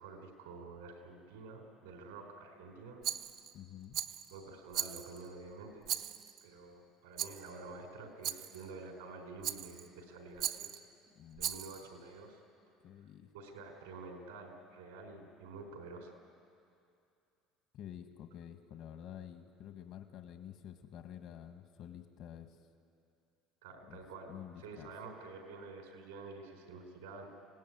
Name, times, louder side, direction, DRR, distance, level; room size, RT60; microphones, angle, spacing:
voice 1, 0.0-3.0 4.3-5.9 6.4-10.7 11.4-12.4 13.3-16.2 23.6-27.3, right 3 dB, 90° right, 3 dB, 4.3 m, -49 dB
Rattle, 3.0-3.5 3.9-4.3 4.7-5.3 5.8-6.4 7.2-7.5 8.2-8.6 9.4-9.9 10.4-10.8 11.4-11.8, right 10 dB, 65° right, 1.0 m, -38 dB
voice 2, 3.5-4.0 11.1-11.7 12.8-13.3 17.7-22.6 23.8-24.0 24.3-24.9, left 10 dB, 60° left, 7 dB, 1.6 m, -49 dB
26.0 x 17.5 x 9.5 m, 2.5 s
hypercardioid pair, 75°, 0 cm